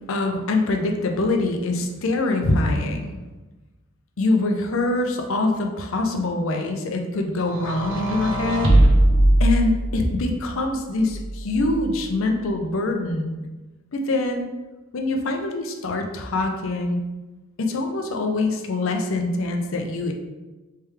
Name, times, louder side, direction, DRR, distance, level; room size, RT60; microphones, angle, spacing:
voice 1, 0.1-3.2 4.2-8.8 9.4-13.3 13.9-14.5 14.9-17.0 17.6-20.1, left 2 dB, 70° left, 3 dB, 0.5 m, -24 dB
sound 1, 7.5-10.2 11.1-12.0, right 1 dB, 60° right, 0.6 m, -20 dB
3.3 x 3.2 x 3.2 m, 1.1 s
head